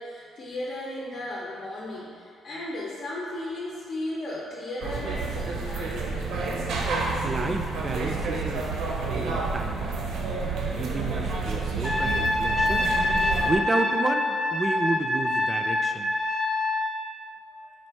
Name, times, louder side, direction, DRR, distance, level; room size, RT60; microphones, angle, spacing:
voice 1, 0.0-6.1, left 1 dB, 65° left, -5 dB, 0.7 m, -35 dB
sound 1, 4.8-13.6, right 3 dB, 80° right, 0.6 m, -29 dB
voice 2, 7.2-9.8 10.6-12.9 13.4-16.1, right 3 dB, 30° right, 5 dB, 0.3 m, -31 dB
Trumpet, 11.8-16.9, left 2 dB, 20° left, 0.6 m, -25 dB
4.2 x 2.5 x 4.4 m, 2.3 s
cardioid pair, 90°, 0 cm